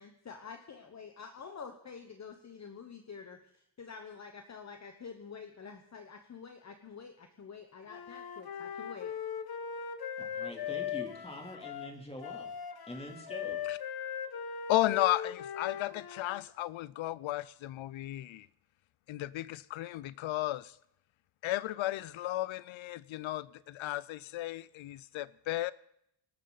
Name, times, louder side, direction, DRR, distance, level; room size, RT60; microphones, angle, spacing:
voice 1, 0.0-3.4 3.8-9.1, left 6 dB, 35° left, 1.1 m, -48 dB
Wind instrument woodwind instrument, 7.9-16.4, left 8 dB, 50° left, 1.3 m, -39 dB
voice 2, 10.2-12.5 12.9-13.6, left 1 dB, 15° left, 3.1 m, -44 dB
voice 3, 14.7-18.5 19.1-20.7 21.4-25.7, left 15 dB, 90° left, 0.5 m, -34 dB
24.5 x 13.0 x 4.0 m
wide cardioid pair, 155°, 46 cm